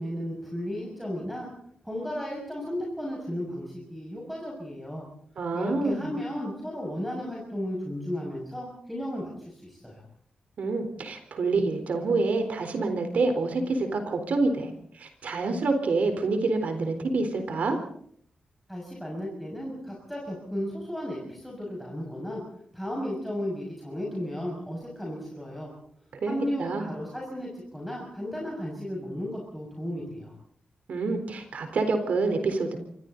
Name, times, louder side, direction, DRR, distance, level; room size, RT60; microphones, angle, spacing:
voice 1, 0.0-1.5 1.8-5.0 5.5-10.0 18.7-22.4 22.7-25.7 26.3-30.3, equal, ahead, -4 dB, 6.4 m, -34 dB
voice 2, 5.4-6.1 10.6-17.8 26.2-26.9 30.9-32.8, right 3 dB, 65° right, 6 dB, 4.0 m, -27 dB
28.5 x 25.0 x 4.0 m, 0.63 s
wide cardioid pair, 165°, 3 cm